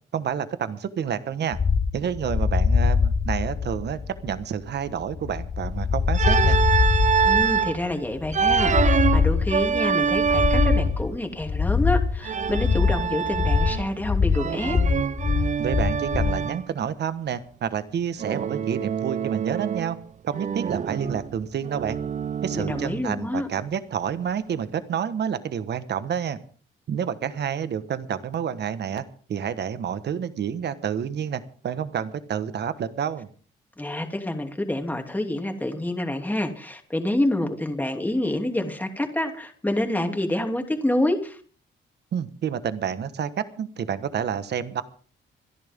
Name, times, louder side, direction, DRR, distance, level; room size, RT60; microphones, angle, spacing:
voice 1, 0.1-1.6 1.9-6.6 7.2-7.3 15.6-20.0 20.2-22.0 22.4-26.4 26.9-29.0 29.3-33.3 42.1-44.8, right 8 dB, 60° right, 12 dB, 1.4 m, -29 dB
sound 1, 1.5-16.4, left 5 dB, 25° left, 1.0 m, -23 dB
Organ, 6.1-7.8 8.3-11.0 12.2-14.0 14.3-16.6 18.2-20.0 20.3-23.0, right 7 dB, 40° right, 0.6 m, -25 dB
voice 2, 7.2-14.8 22.5-23.5 33.8-41.4, left 1 dB, 10° left, 4 dB, 2.9 m, -27 dB
26.5 x 11.0 x 3.7 m, 0.42 s
cardioid pair, 90°, 20 cm